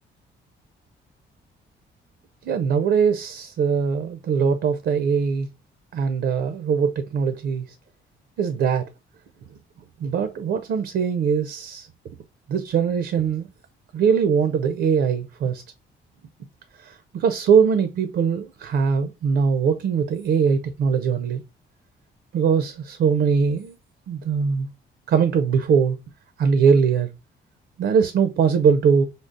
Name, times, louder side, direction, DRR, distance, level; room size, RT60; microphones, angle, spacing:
voice 1, 2.4-5.5 5.9-7.6 8.4-8.9 10.0-11.9 12.5-13.5 13.9-15.6 16.8-21.4 22.3-23.8 24.1-24.7 25.1-26.0 26.4-27.1 27.8-29.0, right 6 dB, 60° right, 0.4 m, -21 dB
5.2 x 2.0 x 2.4 m
cardioid pair, 90°, 20 cm